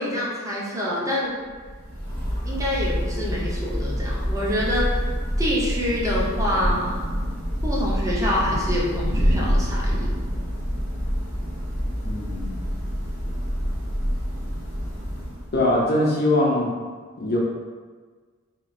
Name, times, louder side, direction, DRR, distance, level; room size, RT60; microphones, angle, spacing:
voice 1, 0.0-1.4 2.4-5.1 5.4-7.0 7.6-10.1, left 1 dB, 15° right, -5 dB, 0.6 m, -26 dB
Thunder / Rain, 1.5-15.9, equal, 75° right, 1.0 m, -26 dB
voice 2, 12.0-12.6 15.5-16.7 17.2-17.4, left 1 dB, 45° left, -3 dB, 0.6 m, -22 dB
2.9 x 2.3 x 2.5 m, 1.5 s
head